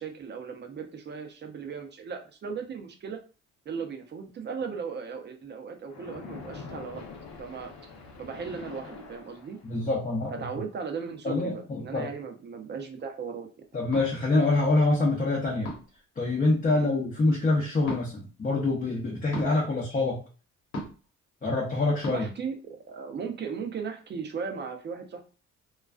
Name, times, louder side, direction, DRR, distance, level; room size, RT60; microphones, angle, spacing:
voice 1, 0.0-3.2 3.7-7.1 7.4-7.7 8.1-9.6 10.4-13.6 16.7-16.9 22.1-25.2, right 6 dB, 35° right, 5 dB, 0.5 m, -37 dB
Splash splatter, 5.9-9.9, left 5 dB, 65° left, 0.8 m, -44 dB
voice 2, 9.6-10.5 11.2-12.1 13.7-15.7 16.2-20.2 21.4-22.3, left 2 dB, 25° left, -3 dB, 0.7 m, -26 dB
sound 1, 13.9-14.1 15.6-16.0 17.8-18.0 19.3-19.5 20.7-21.1 22.0-22.2, equal, 90° left, 1.1 m, -35 dB
2.3 x 2.2 x 2.3 m, 0.35 s
cardioid pair, 90°, 30 cm